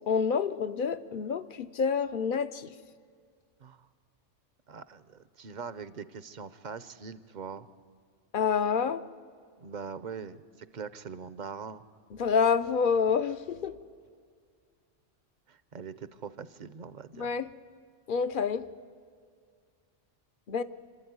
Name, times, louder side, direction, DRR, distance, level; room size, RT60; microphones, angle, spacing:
voice 1, 0.1-2.7 8.3-9.0 12.2-13.7 17.2-17.5 18.1-18.6 20.5-20.6, left 6 dB, 50° left, 13 dB, 0.7 m, -27 dB
voice 2, 4.7-7.7 9.6-11.8 15.5-17.3, right 6 dB, 45° right, 15 dB, 0.7 m, -42 dB
27.0 x 13.0 x 9.5 m, 2.1 s
omnidirectional pair, 1.2 m